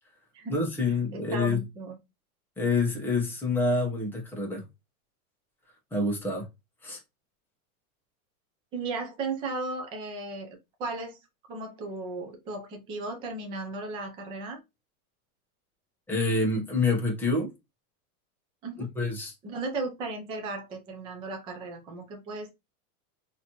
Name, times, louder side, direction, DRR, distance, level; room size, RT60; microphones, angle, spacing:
voice 1, 0.5-1.6 2.6-4.6 5.9-6.5 6.8-7.0 16.1-17.5 18.8-19.3, left 3 dB, 5° left, 0.9 m, -27 dB
voice 2, 1.1-2.0 8.7-11.2 11.5-14.6 18.6-18.9 19.4-22.5, right 3 dB, 10° right, 0.4 m, -35 dB
4.0 x 2.8 x 2.9 m
supercardioid pair, 160°, 44 cm